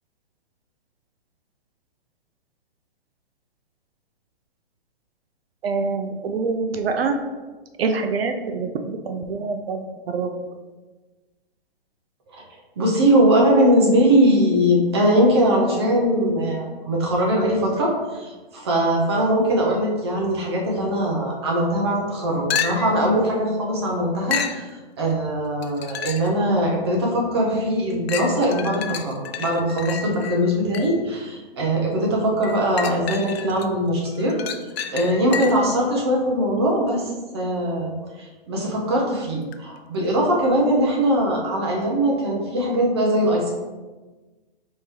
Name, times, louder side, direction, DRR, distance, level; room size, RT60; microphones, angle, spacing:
voice 1, 5.6-7.2 7.8-10.3, right 4 dB, 75° right, 6 dB, 0.5 m, -25 dB
voice 2, 12.8-34.4 34.9-37.0 37.3-43.5, equal, 25° right, -1 dB, 0.6 m, -21 dB
sound 1, 22.5-23.1 24.3-24.6 25.6-26.4 26.9-27.0 28.1-31.1 32.4-33.7 34.1-35.8 39.5-39.6, left 7 dB, 80° left, 0.5 m, -30 dB
4.5 x 3.4 x 3.1 m, 1.3 s
hypercardioid pair, 175°, 31 cm